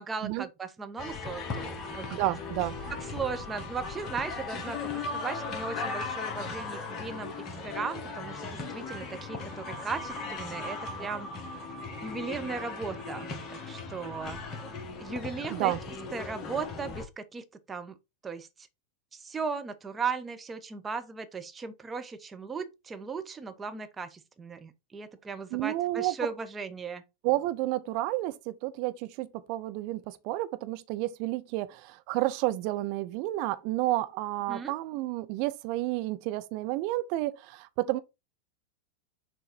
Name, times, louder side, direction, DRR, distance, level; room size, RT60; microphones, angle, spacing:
voice 1, 0.0-2.3 3.0-4.8 5.1-7.3 7.6-11.3 12.0-14.4 15.0-15.7 16.1-18.0 18.2-18.5 19.1-27.0 34.5-34.7, right 5 dB, 15° right, 1.0 m, -37 dB
sound 1, 1.0-17.1, left 3 dB, 30° left, 1.6 m, -37 dB
voice 2, 2.1-2.7 15.5-15.8 25.5-26.1 27.2-38.0, right 17 dB, 45° right, 0.6 m, -31 dB
6.5 x 4.0 x 4.3 m
figure-of-eight pair, 90°, 0 cm